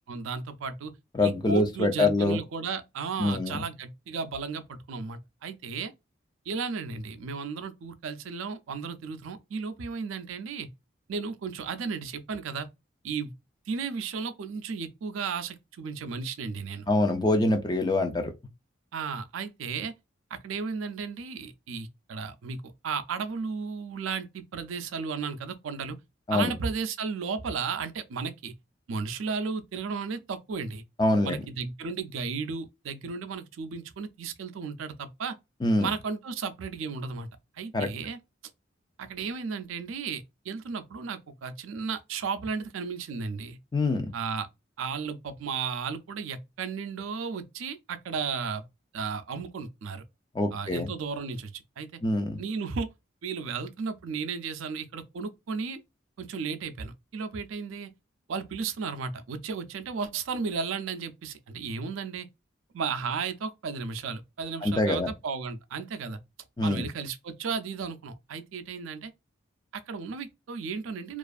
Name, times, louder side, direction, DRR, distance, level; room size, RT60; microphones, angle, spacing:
voice 1, 0.1-0.9 1.2-5.9 6.5-10.7 11.1-12.7 13.0-13.3 13.7-16.9 18.9-19.9 20.3-26.0 26.3-28.5 28.9-30.8 31.2-35.4 35.8-37.3 37.6-38.2 39.0-43.6 44.1-44.5 44.8-48.6 48.9-50.0 50.5-51.9 52.4-52.9 53.2-55.8 56.2-57.9 58.3-62.3 62.7-66.2 66.6-69.1 69.7-71.2, right 5 dB, 85° right, 0.4 m, -34 dB
voice 2, 1.1-2.4 3.2-3.6 16.9-18.3 26.3-26.5 31.0-31.4 35.6-35.9 37.7-37.9 43.7-44.1 50.3-50.9 52.0-52.4 64.6-65.1 66.6-66.9, left 2 dB, 20° left, 0.4 m, -25 dB
2.4 x 2.4 x 2.3 m
head